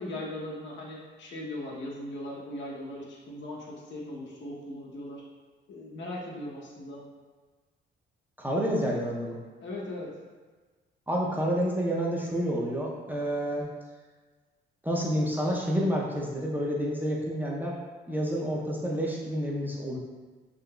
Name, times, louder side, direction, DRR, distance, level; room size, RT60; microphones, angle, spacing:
voice 1, 0.0-5.2 5.7-7.0 9.6-10.1, left 1 dB, 65° left, -3 dB, 0.8 m, -39 dB
voice 2, 8.4-9.4 11.1-13.7 14.8-17.8 18.1-20.0, equal, 10° right, -3 dB, 0.5 m, -29 dB
3.8 x 2.8 x 2.2 m, 1.4 s
cardioid pair, 90°, 20 cm